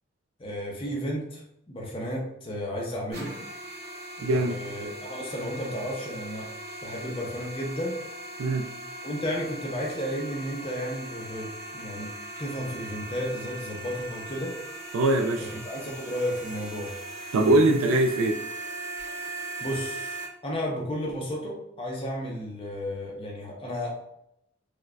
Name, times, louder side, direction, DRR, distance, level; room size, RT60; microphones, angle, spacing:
voice 1, 0.4-3.3 4.3-6.5 6.8-8.0 9.0-12.1 12.4-14.6 15.5-16.9 17.4-17.8 19.2-19.3 19.6-23.9, equal, 25° left, -3 dB, 0.5 m, -33 dB
sound 1, 3.1-20.2, right 2 dB, 50° right, 1.0 m, -39 dB
voice 2, 4.2-4.5 8.4-8.7 14.9-15.5 17.3-18.4, right 2 dB, 80° right, 1 dB, 0.3 m, -22 dB
4.7 x 2.2 x 2.2 m, 0.78 s
head